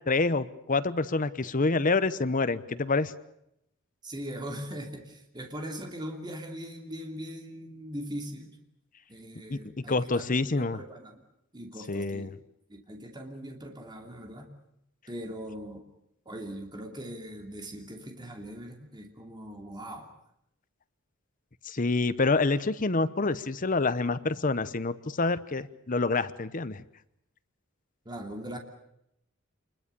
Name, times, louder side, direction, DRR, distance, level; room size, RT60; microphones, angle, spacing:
voice 1, 0.1-3.1 9.5-10.8 11.9-12.4 21.6-26.8, left 3 dB, 40° left, 14 dB, 0.9 m, -27 dB
voice 2, 4.0-8.5 9.1-11.2 11.5-12.3 12.7-14.5 15.1-15.9 16.2-20.1 28.0-28.6, equal, 20° right, 3 dB, 2.8 m, -40 dB
27.5 x 21.0 x 6.9 m, 0.78 s
head